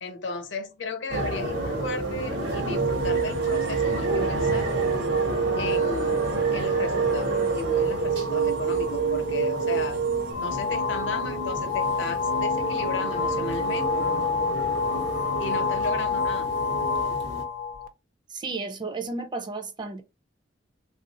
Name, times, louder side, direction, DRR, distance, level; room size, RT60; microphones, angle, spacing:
voice 1, 0.0-4.7 5.6-10.0 10.4-14.1 15.4-16.6, left 3 dB, 75° left, 0.8 m, -35 dB
sound 1, 1.1-17.4, right 1 dB, 70° right, 1.0 m, -31 dB
sound 2, 2.7-10.3, right 6 dB, 85° right, 0.4 m, -27 dB
sound 3, 10.3-17.9, left 4 dB, 50° left, 0.4 m, -28 dB
voice 2, 18.3-20.0, right 3 dB, 25° right, 0.4 m, -33 dB
3.5 x 2.4 x 2.7 m
head